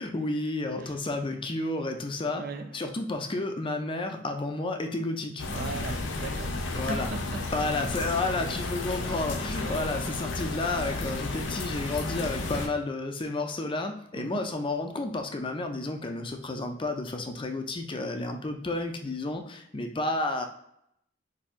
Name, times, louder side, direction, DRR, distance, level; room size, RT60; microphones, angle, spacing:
voice 1, 0.0-2.4 2.7-5.4 6.7-7.1 7.5-20.5, left 2 dB, 25° left, 5 dB, 0.4 m, -31 dB
voice 2, 2.3-2.8 5.5-6.6 6.9-7.4 9.6-9.9 14.1-14.5, right 3 dB, 55° right, 8 dB, 0.4 m, -38 dB
sound 1, 5.4-12.7, left 2 dB, 75° left, 0.6 m, -33 dB
4.3 x 2.6 x 2.4 m, 0.76 s
head